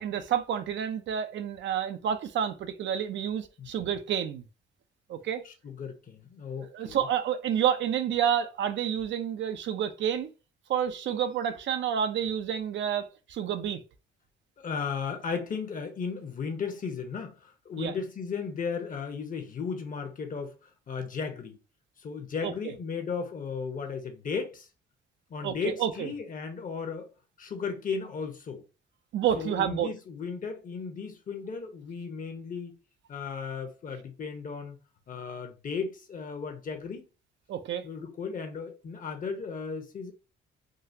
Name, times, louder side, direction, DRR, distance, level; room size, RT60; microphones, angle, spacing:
voice 1, 0.0-4.4 5.1-5.4 6.6-10.3 10.7-13.8 17.8-17.9 22.4-22.7 25.4-26.1 29.1-29.9 37.5-37.8, right 9 dB, 70° right, 0.5 m, -29 dB
voice 2, 5.4-7.0 14.6-20.5 20.9-21.6 22.0-24.7 25.3-27.1 27.4-28.6 29.4-32.7 33.1-34.8 35.1-37.1 37.8-40.1, left 5 dB, 45° left, 0.9 m, -35 dB
3.8 x 2.4 x 2.7 m
cardioid pair, 90°, 20 cm